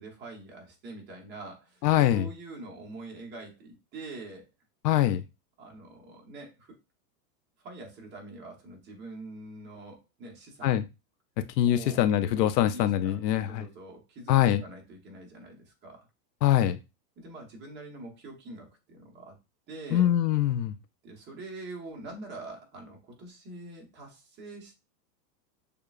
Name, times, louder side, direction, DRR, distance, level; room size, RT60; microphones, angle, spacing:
voice 1, 0.0-1.8 2.1-4.5 5.6-6.8 7.6-10.8 11.6-12.1 12.7-16.1 17.2-19.4 19.7-20.1 21.0-24.7, right 2 dB, 20° right, 1.0 m, -44 dB
voice 2, 1.8-2.3 4.8-5.2 10.6-10.8 11.6-13.6 14.3-14.6 16.4-16.8 19.9-20.7, left 12 dB, 75° left, 0.6 m, -23 dB
6.7 x 2.3 x 2.4 m
supercardioid pair, 150°, 49 cm